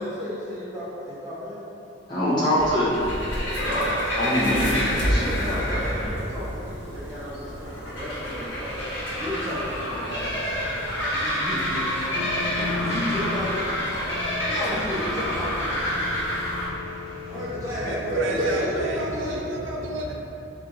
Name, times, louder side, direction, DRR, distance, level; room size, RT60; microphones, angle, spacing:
voice 1, 0.0-1.7 5.3-8.9 9.2-10.8 11.1-13.8 14.4-15.8 17.3-19.5, left 1 dB, 15° right, -11 dB, 0.7 m, -33 dB
voice 2, 2.1-3.0 3.6-5.8, equal, 20° left, -13 dB, 0.8 m, -24 dB
sound 1, 2.6-16.7, equal, 70° left, 1.2 m, -28 dB
sound 2, 12.1-17.5, left 3 dB, 85° left, 0.5 m, -35 dB
voice 3, 17.3-20.1, right 1 dB, 75° right, -1 dB, 0.6 m, -28 dB
4.4 x 2.6 x 3.7 m, 2.8 s
head